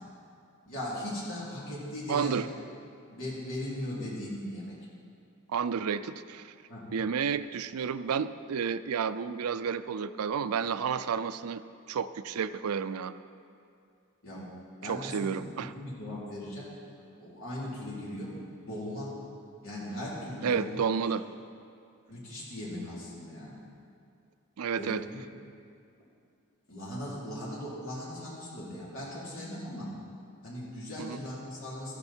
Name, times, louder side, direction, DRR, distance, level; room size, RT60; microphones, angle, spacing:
voice 1, 0.7-2.5 3.1-4.8 6.7-7.0 14.2-14.5 14.8-16.7 17.2-18.4 18.6-19.1 19.6-20.8 22.1-23.6 24.7-25.2 26.7-29.9 30.4-32.0, left 1 dB, 65° left, -6 dB, 3.7 m, -38 dB
voice 2, 2.1-2.5 5.5-6.5 6.9-11.6 11.9-13.1 14.8-15.7 20.4-21.2 24.6-25.0 31.0-31.2, right 6 dB, 85° right, 12 dB, 0.4 m, -31 dB
13.0 x 12.0 x 4.5 m, 2.4 s
head